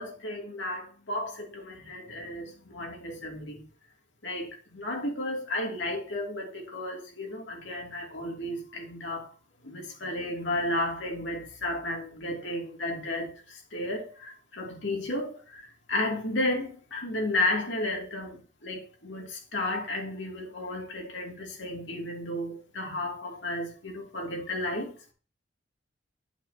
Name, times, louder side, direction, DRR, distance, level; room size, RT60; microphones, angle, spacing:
voice 1, 0.0-3.6 4.2-9.3 9.6-25.1, left 1 dB, 80° left, 2.7 m, -33 dB
8.9 x 8.9 x 2.9 m
head